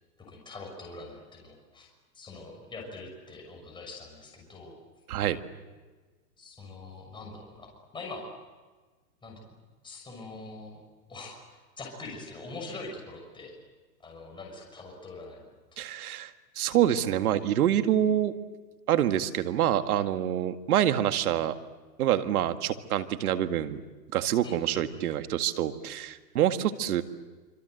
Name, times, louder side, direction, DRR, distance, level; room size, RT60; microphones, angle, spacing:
voice 1, 0.3-1.9 2.1-4.7 6.4-8.2 9.2-9.5 9.8-10.8 11.1-13.5 14.0-15.8 24.4-25.0, left 3 dB, 10° left, 0 dB, 6.2 m, -44 dB
voice 2, 15.8-16.3 16.6-18.3 18.9-21.5 22.0-23.8 24.1-27.0, right 11 dB, 60° right, 8 dB, 2.0 m, -26 dB
26.5 x 25.5 x 7.9 m, 1.3 s
hypercardioid pair, 150°, 49 cm